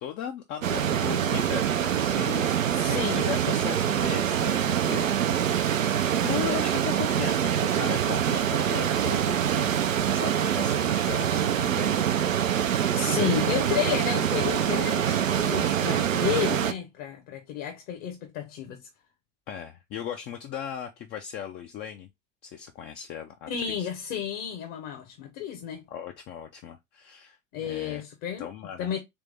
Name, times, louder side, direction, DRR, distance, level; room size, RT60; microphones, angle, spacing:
voice 1, 0.0-12.0 19.5-22.1 22.4-23.9 25.9-28.0 28.4-28.9, left 8 dB, 30° left, 0.4 m, -38 dB
sound 1, 0.6-16.7, right 9 dB, 85° right, 0.5 m, -25 dB
voice 2, 2.8-3.3 12.9-18.8 23.5-25.8 27.5-28.5 28.8-29.0, left 9 dB, 45° left, 1.0 m, -31 dB
3.4 x 3.3 x 3.3 m
figure-of-eight pair, 80°, 38 cm